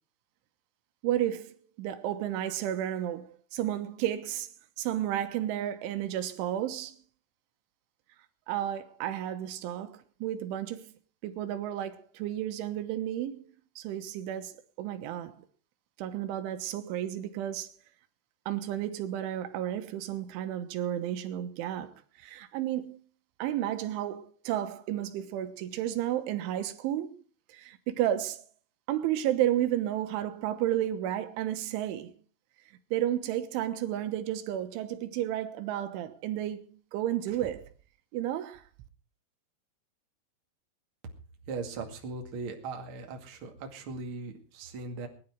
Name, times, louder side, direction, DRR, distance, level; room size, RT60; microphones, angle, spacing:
voice 1, 1.0-4.5 4.8-7.0 8.5-10.9 11.2-15.3 16.0-17.8 18.5-23.0 23.4-27.2 27.5-28.5 28.9-32.1 32.9-37.7 38.1-38.6, right 12 dB, 90° right, 3.7 m, -32 dB
voice 2, 41.5-45.1, right 3 dB, 40° right, 2.2 m, -39 dB
20.5 x 11.0 x 4.6 m
omnidirectional pair, 5.3 m